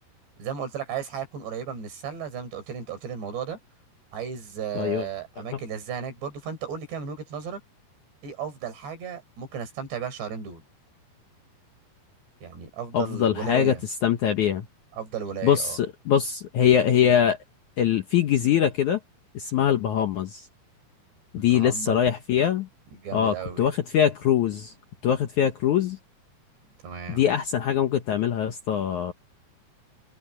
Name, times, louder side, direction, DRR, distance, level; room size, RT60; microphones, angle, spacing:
voice 1, 0.4-3.6 4.1-7.6 8.2-10.6 12.4-13.8 15.0-15.8 21.4-22.1 22.9-23.7 26.8-27.3, right 7 dB, 85° right, 7.1 m, -34 dB
voice 2, 4.8-5.1 5.5-5.6 12.9-14.7 15.4-17.4 17.8-19.0 19.3-20.5 21.3-22.7 23.1-24.7 25.0-26.0 27.1-29.1, left 9 dB, 70° left, 1.9 m, -23 dB
omnidirectional pair, 4.8 m